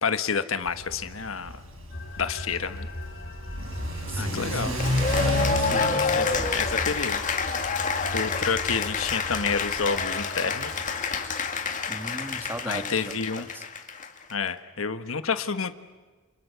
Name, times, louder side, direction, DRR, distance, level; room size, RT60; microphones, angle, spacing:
voice 1, 0.0-1.6 2.2-2.9 4.1-4.8 5.7-6.3 6.5-7.2 8.1-10.7 12.7-13.5 14.3-15.7, left 5 dB, 90° left, 10 dB, 1.4 m, -29 dB
Car / Accelerating revving vroom, 0.6-10.0, left 1 dB, 90° right, 6.9 m, -32 dB
sound 1, 1.9-12.7, left 1 dB, 55° left, 2.4 m, -40 dB
voice 2, 4.1-4.9 5.1-6.5 11.9-13.6, right 1 dB, 10° right, 6 dB, 2.1 m, -37 dB
Cheering / Applause, 4.8-14.3, left 5 dB, 40° left, 2.2 m, -28 dB
29.5 x 28.0 x 6.8 m, 1.3 s
head